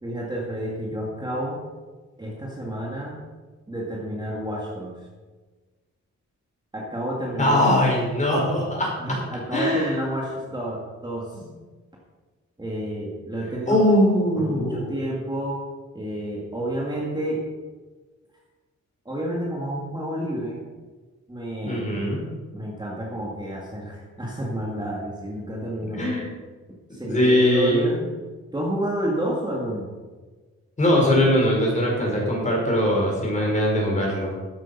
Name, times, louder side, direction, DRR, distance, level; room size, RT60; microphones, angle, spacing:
voice 1, 0.0-1.6 2.2-3.2 3.7-4.9 6.7-7.7 9.0-11.4 12.6-13.9 14.4-15.6 15.9-17.4 19.1-20.6 21.3-22.0 22.5-26.2 26.9-28.0 28.5-29.9, right 1 dB, 15° right, -3 dB, 2.1 m, -30 dB
voice 2, 7.4-9.2 9.5-10.0 11.3-11.4 13.7-14.9 21.6-22.2 26.0-26.3 27.0-27.8 30.8-34.4, left 1 dB, 25° left, -2 dB, 4.7 m, -21 dB
13.0 x 9.0 x 5.5 m, 1.3 s
wide cardioid pair, 140°, 30 cm